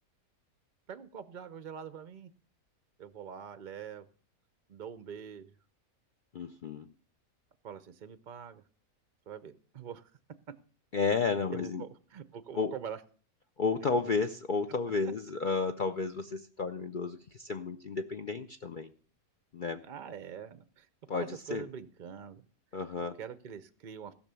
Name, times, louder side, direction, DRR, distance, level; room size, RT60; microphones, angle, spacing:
voice 1, 0.9-2.3 3.0-4.1 4.7-5.5 7.6-8.6 9.3-10.1 11.5-13.0 13.9-14.1 19.8-22.4 23.2-24.1, right 7 dB, 50° right, 13 dB, 0.6 m, -44 dB
voice 2, 6.3-6.9 10.9-11.8 12.5-12.7 13.6-18.9 19.5-19.8 21.1-21.6 22.7-23.1, left 4 dB, 50° left, 7 dB, 0.6 m, -32 dB
16.0 x 6.1 x 6.9 m, 0.42 s
omnidirectional pair, 1.5 m